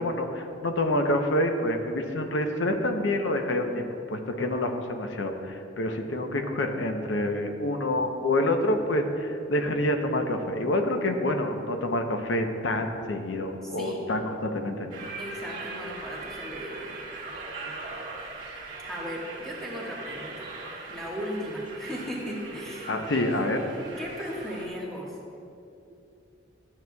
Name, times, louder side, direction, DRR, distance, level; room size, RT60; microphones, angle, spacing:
voice 1, 0.0-14.8 22.9-23.6, left 1 dB, 80° left, 5 dB, 0.7 m, -27 dB
voice 2, 13.6-14.0 15.2-16.9 18.9-20.5 20.9-23.0 24.0-25.2, equal, ahead, -6 dB, 1.4 m, -36 dB
sound 1, 14.9-24.7, right 3 dB, 45° right, 1.5 m, -40 dB
13.0 x 7.8 x 2.3 m, 2.7 s
head